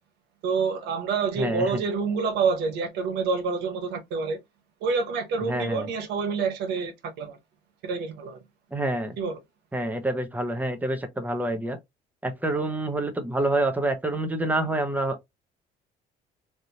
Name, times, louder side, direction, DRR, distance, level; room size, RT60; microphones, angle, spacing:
voice 1, 0.4-4.4 4.8-7.4 7.8-8.4 9.2-9.4, right 5 dB, 80° right, 1.0 m, -27 dB
voice 2, 1.4-1.7 5.5-5.9 8.7-9.2 9.7-11.8 12.2-15.2, right 1 dB, 10° right, 0.8 m, -27 dB
3.4 x 2.6 x 2.8 m
cardioid pair, 110°, 17 cm